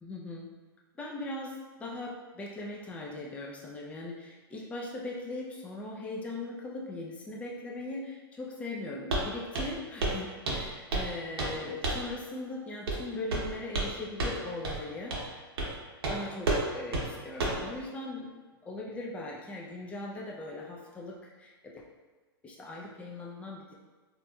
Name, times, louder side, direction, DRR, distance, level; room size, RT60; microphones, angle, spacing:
voice 1, 0.0-0.5 1.0-15.4 16.1-18.3 18.6-21.8 22.4-23.7, left 2 dB, 10° left, -2 dB, 0.4 m, -40 dB
Walk footsteps, 9.1-9.3 9.5-9.8 10.0-10.2 10.5-11.1 11.4-11.6 11.8-12.1 12.9-13.0 13.3-13.9 14.2-14.4 14.6-14.8 15.1-15.3 15.6-15.7 16.0-16.2 16.5-16.6 16.9-17.1 17.4-17.6, right 2 dB, 70° right, 0.8 m, -30 dB
4.0 x 2.7 x 2.2 m, 1.3 s
hypercardioid pair, 115°, 13 cm